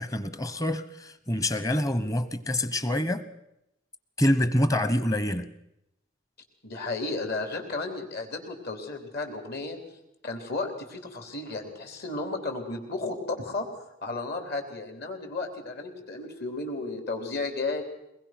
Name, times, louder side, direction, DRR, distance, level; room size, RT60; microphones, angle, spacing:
voice 1, 0.0-3.2 4.2-5.5, left 1 dB, 20° left, 12 dB, 1.2 m, -26 dB
voice 2, 6.6-9.8 10.2-17.8, left 3 dB, 55° left, 4 dB, 3.7 m, -33 dB
23.0 x 20.5 x 6.1 m, 0.84 s
head